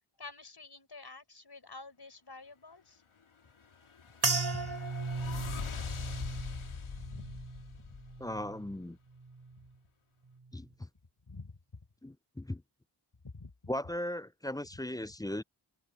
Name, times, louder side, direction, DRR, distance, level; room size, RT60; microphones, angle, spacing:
voice 1, 0.2-3.0 4.5-4.8 6.3-6.4 6.9-7.4 7.8-8.0 11.3-11.6 13.2-13.7, left 3 dB, 50° left, 6.2 m, -49 dB
sound 1, 3.6-8.5, left 6 dB, 85° left, 1.9 m, -42 dB
sound 2, 4.2-8.8 9.1-9.7 10.3-10.6, right 3 dB, 50° right, 3.3 m, -37 dB
voice 2, 8.2-9.0 10.5-10.9 12.0-12.6 13.7-15.4, left 1 dB, 10° left, 0.5 m, -37 dB
open air
cardioid pair, 40°, 48 cm